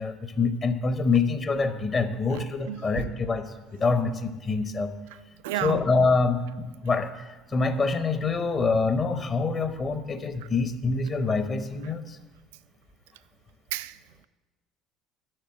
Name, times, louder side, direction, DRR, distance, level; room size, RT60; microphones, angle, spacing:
voice 1, 0.0-4.9 5.5-12.2, left 4 dB, 35° left, 0.9 m, -26 dB
voice 2, 2.7-3.1 5.4-5.8 13.7-13.9, right 14 dB, 70° right, 0.3 m, -31 dB
7.9 x 6.7 x 7.9 m
figure-of-eight pair, 60°, 0 cm